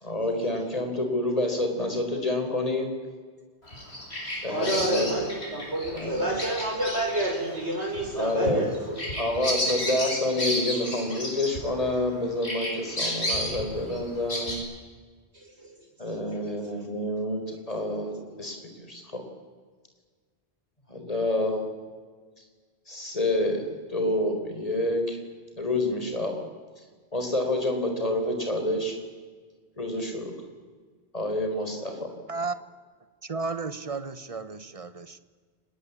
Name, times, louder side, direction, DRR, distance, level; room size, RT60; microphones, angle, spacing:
voice 1, 0.0-2.9 4.4-5.1 5.9-6.3 8.1-8.7 9.2-14.5 16.0-18.6 18.9-19.2 20.9-21.6 22.9-23.6 23.9-25.2 25.6-26.4 27.1-29.0 29.8-30.3 31.1-32.1, left 1 dB, 35° left, 4 dB, 4.4 m, -28 dB
Bird vocalization bird call bird song, 3.7-12.1 12.4-14.6, equal, 70° left, 7.4 m, -32 dB
voice 2, 4.5-9.0 15.3-15.8 16.6-16.7, right 1 dB, 85° right, 2 dB, 5.9 m, -29 dB
voice 3, 33.2-35.2, right 4 dB, 35° right, 13 dB, 1.2 m, -33 dB
29.0 x 20.5 x 8.5 m, 1.5 s
omnidirectional pair, 1.1 m